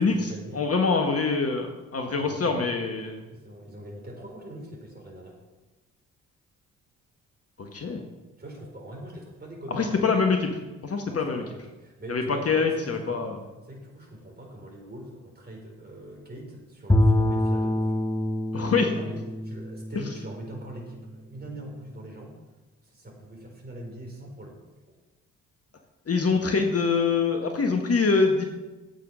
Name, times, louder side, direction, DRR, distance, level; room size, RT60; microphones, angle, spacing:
voice 1, 0.0-0.6 2.2-2.7 3.3-5.4 8.4-10.2 11.1-13.3 13.7-18.0 18.8-22.4 22.8-24.6 24.9-25.0 26.3-26.6, right 1 dB, 25° right, -1 dB, 4.3 m, -42 dB
voice 2, 0.5-3.3 7.6-8.0 9.7-10.5 10.8-11.4 12.1-13.4 18.5-18.9 26.1-28.4, left 4 dB, 35° left, 4 dB, 1.5 m, -24 dB
Bowed string instrument, 16.9-21.1, left 1 dB, 10° left, 1.1 m, -26 dB
11.5 x 8.2 x 5.6 m, 1.1 s
hypercardioid pair, 45°, 39 cm